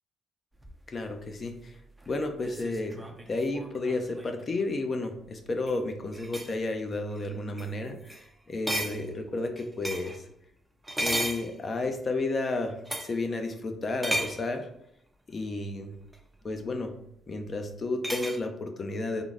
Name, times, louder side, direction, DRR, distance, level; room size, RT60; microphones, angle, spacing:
sound 1, 0.6-4.4 5.5-5.8 6.1-6.6 7.2-7.3 7.6-7.7 8.1-8.3 8.7-10.2 10.8-12.0 12.9-13.2 14.0-14.5 16.1-16.2 18.0-18.4, right 1 dB, 10° right, 0.5 m, -34 dB
voice 1, 0.9-1.7 2.1-10.2 11.0-14.7 15.3-15.9 16.4-16.9 17.3-19.2, left 2 dB, 40° left, 5 dB, 0.6 m, -32 dB
3.7 x 2.1 x 3.5 m, 0.75 s
cardioid pair, 90°, 0 cm